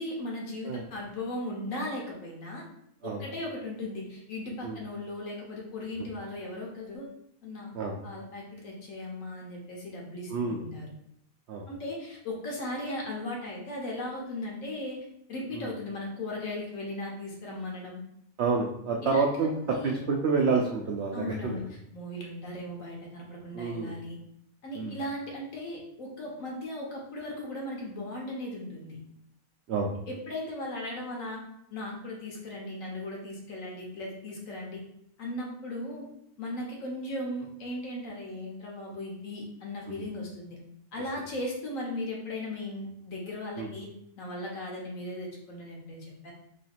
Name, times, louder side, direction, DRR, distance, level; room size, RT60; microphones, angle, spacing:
voice 1, 0.0-2.6 3.0-7.7 8.0-10.9 11.7-18.0 19.0-20.0 21.1-24.2 24.6-29.0 30.1-31.4 31.7-34.8 35.2-36.1 36.4-40.6 40.9-43.9 44.2-46.3, left 1 dB, 60° left, -1 dB, 1.2 m, -37 dB
voice 2, 10.3-10.6 11.5-11.7 15.5-15.7 18.4-21.6 23.5-23.9 24.7-25.0 29.7-29.9 43.6-43.7, right 4 dB, 70° right, 0 dB, 0.6 m, -28 dB
3.1 x 2.8 x 4.2 m, 0.74 s
omnidirectional pair, 1.6 m